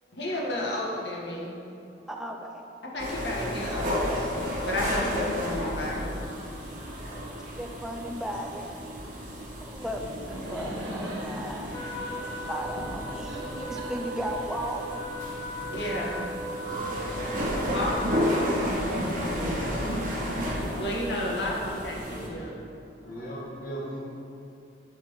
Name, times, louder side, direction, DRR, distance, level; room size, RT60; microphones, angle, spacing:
voice 1, 0.1-1.6 2.8-6.2 15.7-16.3 17.6-19.2 20.8-22.6, left 1 dB, 75° left, -3 dB, 1.7 m, -32 dB
voice 2, 2.1-2.7 7.0-7.3 7.6-8.7 9.6-14.9, equal, 5° right, 2 dB, 0.6 m, -36 dB
sound 1, 3.0-22.3, equal, 50° right, 1.5 m, -32 dB
Laughter, 9.7-15.6, right 1 dB, 80° right, 1.6 m, -40 dB
Trumpet, 11.7-18.6, equal, 15° left, 1.3 m, -38 dB
voice 3, 19.2-19.6 23.0-24.0, right 1 dB, 50° left, -7 dB, 1.9 m, -37 dB
9.1 x 4.4 x 6.5 m, 2.7 s
head